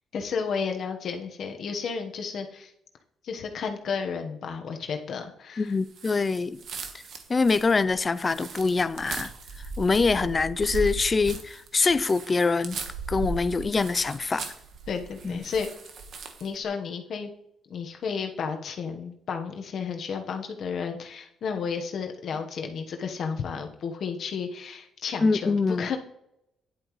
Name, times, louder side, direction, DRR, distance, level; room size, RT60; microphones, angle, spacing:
voice 1, 0.1-2.7 3.2-5.7 14.9-15.7 16.4-17.3 17.7-26.0, left 6 dB, 60° left, 1.2 m, -32 dB
voice 2, 5.6-6.6 7.3-9.3 9.8-12.8 13.1-14.5 15.2-15.5 25.2-25.9, left 4 dB, 30° left, 0.4 m, -24 dB
sound 1, 5.9-16.6, right 3 dB, 65° right, 1.3 m, -38 dB
10.5 x 8.5 x 3.1 m
cardioid pair, 90°, 0 cm